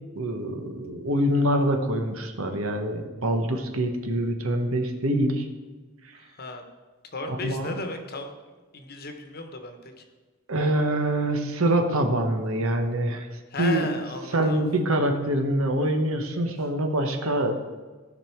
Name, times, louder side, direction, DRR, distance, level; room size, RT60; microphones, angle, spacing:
voice 1, 0.2-5.5 7.4-7.8 10.5-13.3 13.6-13.9 14.3-17.5, right 1 dB, 70° right, 5 dB, 1.1 m, -25 dB
voice 2, 6.1-6.6 7.1-8.3 8.7-10.1 13.5-14.6, left 2 dB, 45° left, 6 dB, 1.1 m, -35 dB
15.5 x 5.4 x 4.6 m, 1.3 s
head